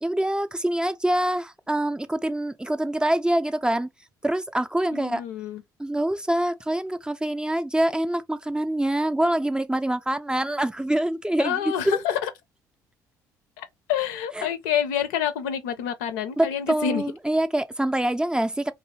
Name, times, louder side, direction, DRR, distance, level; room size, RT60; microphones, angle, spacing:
voice 1, 0.0-3.9 4.2-5.2 5.8-12.0 14.3-14.5 16.4-18.7, right 1 dB, 10° right, 0.4 m, -25 dB
voice 2, 4.9-5.6 11.4-12.3 13.6-17.0, left 9 dB, 75° left, 0.5 m, -27 dB
2.6 x 2.6 x 3.1 m
hypercardioid pair, 50°, 10 cm